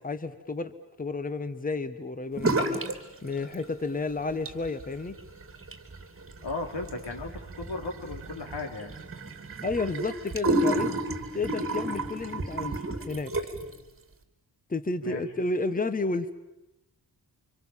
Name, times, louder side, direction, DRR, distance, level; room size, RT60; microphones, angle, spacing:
voice 1, 0.0-0.7 1.0-2.8 3.2-5.2 9.6-10.9 11.3-13.3 14.7-16.3, left 3 dB, 20° left, 12 dB, 1.2 m, -31 dB
sound 1, 2.4-3.0 3.2-3.9 4.3-13.7, right 2 dB, 30° right, 3.2 m, -31 dB
voice 2, 6.4-9.0 15.0-15.3, left 3 dB, 85° left, 3 dB, 4.0 m, -36 dB
29.0 x 26.0 x 7.5 m, 0.96 s
wide cardioid pair, 110°, 41 cm